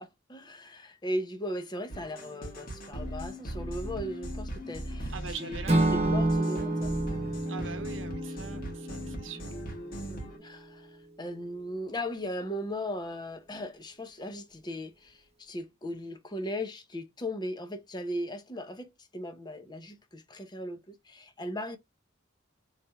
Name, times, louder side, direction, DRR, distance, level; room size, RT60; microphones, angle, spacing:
voice 1, 0.0-5.1 5.4-5.6 5.9-6.9 10.0-21.8, left 1 dB, 20° left, 0.7 m, -37 dB
sound 1, 1.9-10.4, equal, 45° left, 1.5 m, -39 dB
voice 2, 5.1-6.1 7.5-9.6, right 5 dB, 70° right, 0.9 m, -42 dB
Acoustic guitar / Strum, 5.7-9.8, right 2 dB, 30° right, 0.8 m, -29 dB
4.3 x 3.3 x 2.3 m
head